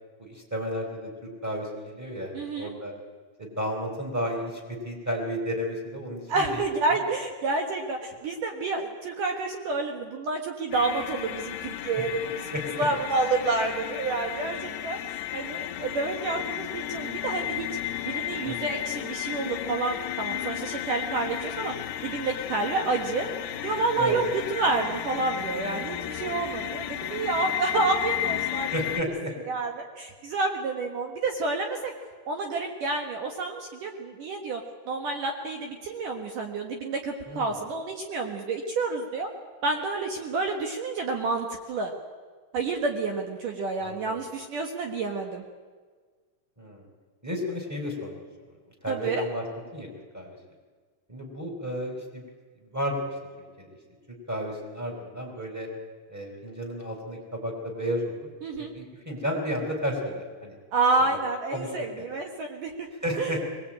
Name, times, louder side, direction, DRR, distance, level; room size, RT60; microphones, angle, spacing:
voice 1, 0.2-2.9 3.4-6.6 6.9-7.0 12.5-12.6 18.4-18.6 24.0-24.2 28.7-29.3 37.3-37.6 43.8-44.1 46.6-46.8 47.2-48.2 48.8-49.4 49.7-49.9 50.1-50.4 51.1-52.2 52.7-53.0 53.6-53.7 54.3-55.7 56.1-58.1 58.6-60.5 61.0-61.1 61.5-62.0 63.0-63.4, equal, 5° right, 0 dB, 3.7 m, -32 dB
voice 2, 2.3-2.7 6.3-17.7 18.1-21.7 22.0-23.3 23.6-28.7 29.5-31.9 32.3-39.3 39.6-41.9 42.5-45.4 48.9-49.2 58.4-58.7 60.7-62.7 63.2-63.3, right 3 dB, 60° right, 3 dB, 2.3 m, -29 dB
sound 1, 10.7-29.0, left 13 dB, 75° left, 2.4 m, -33 dB
22.5 x 19.5 x 8.8 m, 1.5 s
omnidirectional pair, 5.6 m